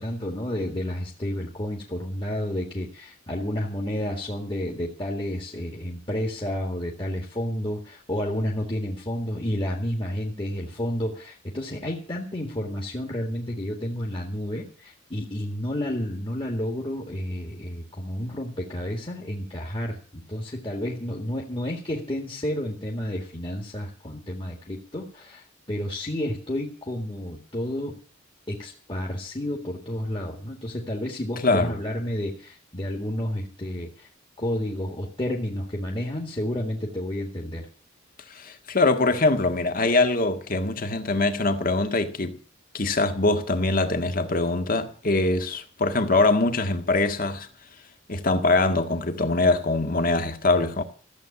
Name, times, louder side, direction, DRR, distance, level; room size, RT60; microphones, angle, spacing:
voice 1, 0.0-28.0 28.5-34.1 34.4-37.7, left 1 dB, 25° left, 2.1 m, -31 dB
voice 2, 31.4-31.7 38.4-42.4 42.7-47.5 48.1-50.8, left 2 dB, 45° left, 1.7 m, -23 dB
15.0 x 8.0 x 9.8 m
head